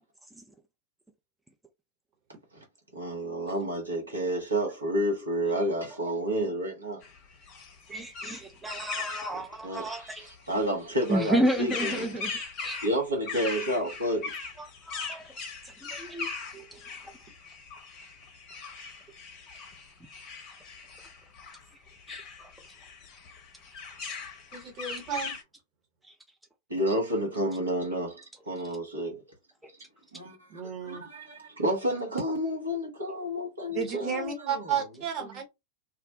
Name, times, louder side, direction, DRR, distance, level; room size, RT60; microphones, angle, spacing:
voice 1, 2.9-7.0 9.6-10.0 10.5-12.1 12.8-14.3 26.7-29.2 30.1-30.5 30.8-34.8 35.2-35.4, equal, 75° right, 1.0 m, -30 dB
sound 1, 7.0-25.4, left 4 dB, 40° left, 0.7 m, -40 dB
voice 2, 7.9-10.3 11.1-12.3 12.6-12.8 14.6-15.2 15.8-16.3 16.5-16.8 22.1-22.5 26.1-26.2, right 1 dB, 5° right, 0.4 m, -32 dB
voice 3, 24.5-25.4 30.5-31.0 33.7-35.4, right 7 dB, 40° right, 1.1 m, -32 dB
2.4 x 2.1 x 2.7 m
figure-of-eight pair, 90°, 0 cm